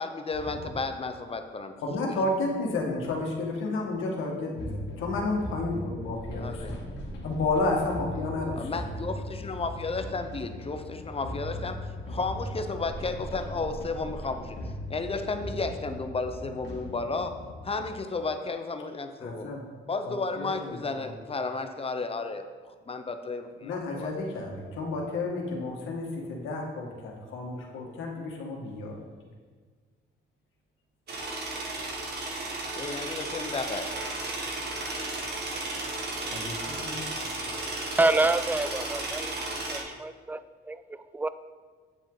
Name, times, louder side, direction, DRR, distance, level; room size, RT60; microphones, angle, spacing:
voice 1, 0.0-1.7 2.0-2.2 6.4-6.7 8.5-14.6 14.9-17.4 17.6-19.6 19.9-24.1 32.8-34.0, left 3 dB, 30° left, 7 dB, 0.8 m, -33 dB
voice 2, 1.8-6.8 7.2-8.8 19.2-19.6 20.0-21.1 23.6-29.0 36.3-37.4, left 2 dB, 85° left, 0 dB, 1.8 m, -31 dB
sound 1, 4.6-17.9, left 1 dB, 60° left, 2.0 m, -39 dB
sound 2, 31.1-39.8, right 2 dB, 55° right, 1.8 m, -34 dB
voice 3, 38.0-39.3 39.7-41.3, right 2 dB, 10° right, 13 dB, 0.4 m, -27 dB
8.9 x 7.6 x 4.0 m, 1.5 s
cardioid pair, 90°, 20 cm